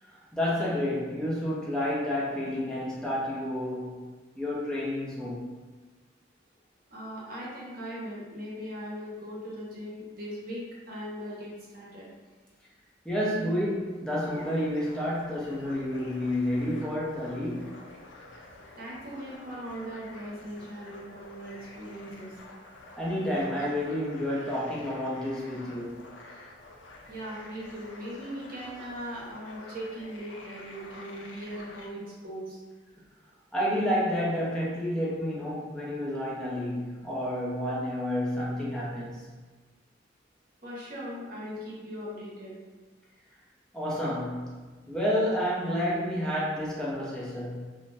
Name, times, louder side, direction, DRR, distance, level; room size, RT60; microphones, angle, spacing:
voice 1, 0.1-4.1 4.4-5.5 13.0-17.8 23.0-26.1 33.5-39.3 43.7-47.7, left 1 dB, 5° left, -6 dB, 0.5 m, -30 dB
voice 2, 6.9-12.1 18.8-22.4 27.1-32.6 40.6-42.5, equal, 50° right, -5 dB, 0.8 m, -39 dB
sound 1, 14.2-31.9, left 2 dB, 90° left, 0.4 m, -49 dB
2.5 x 2.1 x 3.2 m, 1.3 s
head